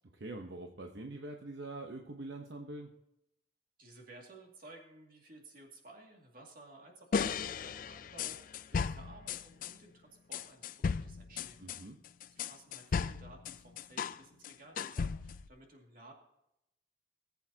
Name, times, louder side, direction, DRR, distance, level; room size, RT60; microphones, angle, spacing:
voice 1, 0.1-2.9 11.6-12.0, right 2 dB, 70° right, 3 dB, 0.9 m, -44 dB
voice 2, 3.8-11.6 12.3-16.1, right 2 dB, 50° right, 1 dB, 2.2 m, -56 dB
sound 1, 7.1-9.7 10.3-14.2 14.4-15.5, left 6 dB, 50° left, 0.3 m, -36 dB
19.0 x 8.3 x 2.8 m, 0.83 s
head